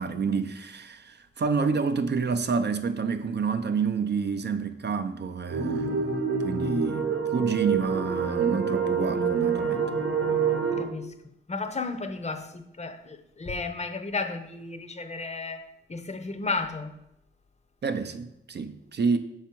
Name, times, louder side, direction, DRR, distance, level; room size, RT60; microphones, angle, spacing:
voice 1, 0.0-6.1 6.4-9.8 17.8-19.2, right 5 dB, 55° right, 0.5 m, -28 dB
sound 1, 5.5-10.8, right 5 dB, 90° right, 1.0 m, -27 dB
voice 2, 10.8-11.1 11.5-16.9, left 3 dB, 35° left, 0.6 m, -33 dB
6.1 x 4.8 x 4.4 m
wide cardioid pair, 100°, 21 cm